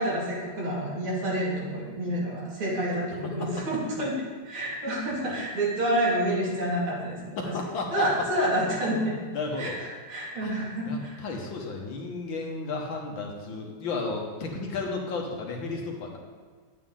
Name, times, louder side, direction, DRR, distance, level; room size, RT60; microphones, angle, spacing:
voice 1, 0.0-4.1 4.5-7.5 7.9-9.2 9.6-11.2, right 1 dB, 75° right, -6 dB, 3.4 m, -28 dB
voice 2, 7.4-8.1 9.3-9.8 10.4-10.5 10.9-16.2, left 3 dB, 65° left, 1 dB, 1.9 m, -33 dB
10.5 x 8.6 x 3.8 m, 1.5 s
omnidirectional pair, 2.4 m